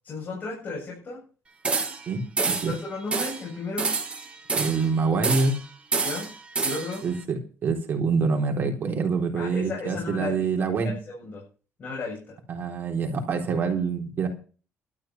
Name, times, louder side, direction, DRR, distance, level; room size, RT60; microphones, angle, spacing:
voice 1, 0.0-1.2 2.7-3.9 6.0-6.3 6.6-7.0 9.4-11.4 11.8-12.4, left 3 dB, 35° left, -4 dB, 7.7 m, -34 dB
sound 1, 1.6-2.1 2.4-2.8 3.1-3.4 3.8-4.9 5.2-5.6 5.9-7.0, right 4 dB, 25° right, 2.2 m, -27 dB
voice 2, 4.6-5.6 7.0-11.0 12.5-14.3, right 4 dB, 45° right, 3 dB, 3.7 m, -26 dB
13.0 x 10.5 x 5.9 m, 0.37 s
cardioid pair, 140°, 5 cm